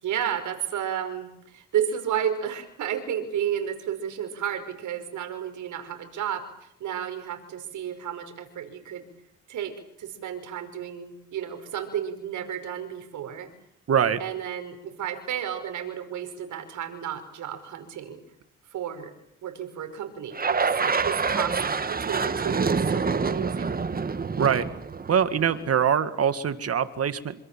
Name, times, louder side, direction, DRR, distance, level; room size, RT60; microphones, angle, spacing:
voice 1, 0.0-9.1 9.5-13.5 14.2-18.2 18.7-19.1 19.4-23.8, right 9 dB, 75° right, 7 dB, 5.3 m, -32 dB
voice 2, 13.9-14.2 24.4-24.7 25.1-27.3, right 8 dB, 50° right, 11 dB, 2.0 m, -23 dB
sound 1, 20.3-25.7, right 5 dB, 30° right, 1.6 m, -27 dB
27.0 x 26.5 x 7.5 m, 0.75 s
cardioid pair, 90°, 30 cm